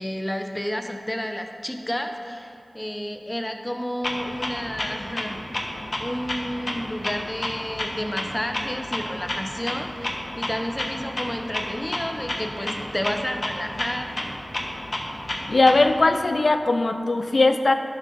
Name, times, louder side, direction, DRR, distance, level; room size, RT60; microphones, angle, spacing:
voice 1, 0.0-5.7 6.0-14.1, equal, 15° left, 5 dB, 0.7 m, -31 dB
Clock, 4.0-16.0, left 1 dB, 55° left, 0.9 m, -32 dB
voice 2, 15.5-17.7, left 2 dB, 75° left, 8 dB, 0.4 m, -19 dB
11.5 x 3.9 x 5.3 m, 2.6 s
wide cardioid pair, 55°, 0 cm